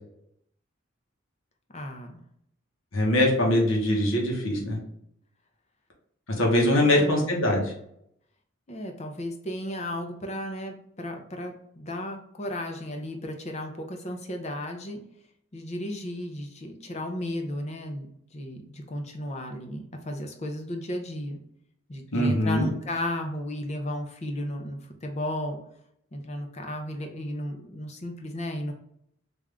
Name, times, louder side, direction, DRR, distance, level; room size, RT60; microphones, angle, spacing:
voice 1, 1.7-2.2 6.8-7.2 8.7-15.0 15.5-18.1 18.3-21.4 21.9-25.6 26.1-28.7, left 1 dB, 30° left, 4 dB, 0.6 m, -34 dB
voice 2, 2.9-4.8 6.4-7.7 22.1-22.7, left 1 dB, 70° left, -1 dB, 1.1 m, -22 dB
3.6 x 2.6 x 3.3 m, 0.73 s
head